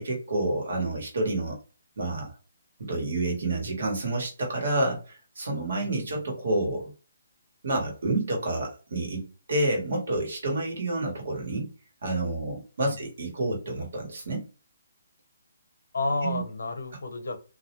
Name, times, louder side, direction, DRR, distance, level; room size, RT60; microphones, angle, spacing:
voice 1, 0.0-1.6 2.0-2.3 2.9-6.9 7.6-11.7 12.0-14.5 16.2-16.4, right 2 dB, 50° right, 1 dB, 1.1 m, -29 dB
voice 2, 15.9-17.4, left 3 dB, 85° left, 7 dB, 0.8 m, -31 dB
2.3 x 2.0 x 2.9 m, 0.34 s
hypercardioid pair, 180°, 0 cm